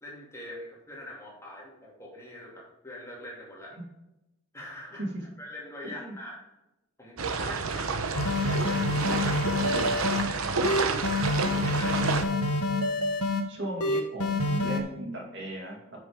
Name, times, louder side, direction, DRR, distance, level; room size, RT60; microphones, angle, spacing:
voice 1, 0.0-3.7 4.5-5.0 5.4-6.4 7.0-8.8 9.1-10.8 11.1-12.2, equal, 15° left, -4 dB, 2.5 m, -43 dB
sound 1, 7.2-12.2, right 4 dB, 70° right, 0.9 m, -29 dB
sound 2, 8.2-10.2 10.6-13.4 13.8-14.8, left 2 dB, 90° left, 1.4 m, -27 dB
voice 2, 13.5-16.0, right 1 dB, 50° right, 0 dB, 2.1 m, -37 dB
9.8 x 6.3 x 3.6 m, 0.93 s
head